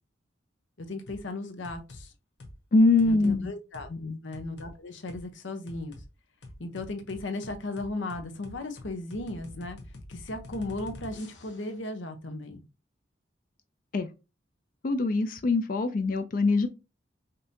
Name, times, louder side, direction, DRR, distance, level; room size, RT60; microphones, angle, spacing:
voice 1, 0.8-2.1 3.0-3.9 4.2-6.0 6.6-9.8 10.1-12.6, left 2 dB, 90° left, 0.8 m, -36 dB
sound 1, 1.1-1.3 1.6-2.0 2.4-2.6 3.0-3.4 3.7-3.9 4.3-4.7 5.1-5.2 5.7-6.1 6.4-11.7, left 1 dB, 65° left, 1.1 m, -45 dB
voice 2, 2.7-3.5 4.0-4.2 13.9-14.1 14.8-16.7, left 3 dB, 45° left, 0.4 m, -23 dB
5.2 x 2.7 x 2.7 m
head